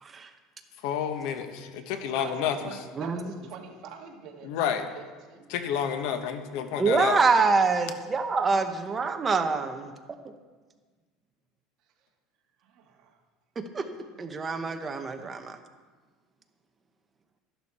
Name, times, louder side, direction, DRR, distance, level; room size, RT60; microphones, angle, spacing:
voice 1, 0.8-2.6 4.4-4.9 5.5-7.2, left 8 dB, 70° left, 8 dB, 1.2 m, -29 dB
voice 2, 2.1-5.9 12.6-13.2, right 6 dB, 50° right, 2 dB, 1.8 m, -46 dB
voice 3, 3.0-3.3 6.8-9.9 10.2-10.3 13.7-13.9 14.2-15.6, right 4 dB, 20° right, 6 dB, 0.9 m, -25 dB
12.5 x 11.5 x 4.3 m, 1.4 s
cardioid pair, 145°, 0 cm